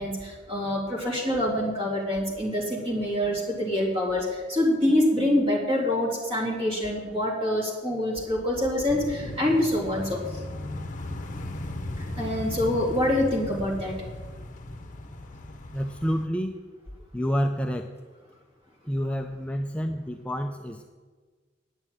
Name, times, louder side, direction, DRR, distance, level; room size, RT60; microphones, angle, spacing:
voice 1, 0.0-10.2 12.0-14.0, left 1 dB, 30° right, -3 dB, 3.3 m, -26 dB
sound 1, 8.9-16.3, left 1 dB, 45° left, 0.9 m, -37 dB
voice 2, 15.7-16.6 17.1-17.9 18.8-20.8, equal, 5° left, 3 dB, 0.5 m, -28 dB
9.8 x 7.6 x 9.2 m, 1.4 s
head